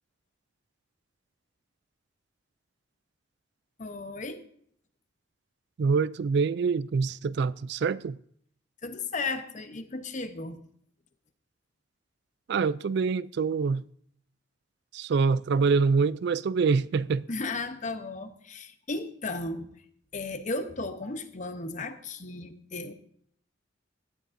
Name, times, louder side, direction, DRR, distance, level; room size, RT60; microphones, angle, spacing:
voice 1, 3.8-4.4 8.8-10.6 17.3-19.7 20.1-22.9, left 3 dB, 40° left, 0.9 m, -35 dB
voice 2, 5.8-8.2 12.5-13.8 14.9-17.2, right 5 dB, 60° right, 0.3 m, -25 dB
17.0 x 12.5 x 2.7 m
head